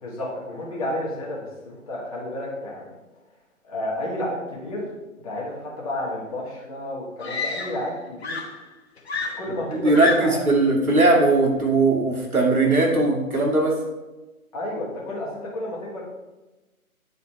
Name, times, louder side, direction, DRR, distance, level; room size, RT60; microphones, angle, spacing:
voice 1, 0.0-2.9 3.6-4.9 5.2-8.4 9.4-10.4 14.5-16.0, left 1 dB, 25° left, -5 dB, 1.6 m, -31 dB
Screaming, 6.4-6.5 7.2-8.0 8.2-10.5 11.5-11.8, left 4 dB, 45° left, 1.1 m, -30 dB
voice 2, 9.7-13.7, right 2 dB, 80° right, 0 dB, 2.0 m, -19 dB
9.4 x 4.1 x 4.2 m, 1.1 s
figure-of-eight pair, 150°, 43 cm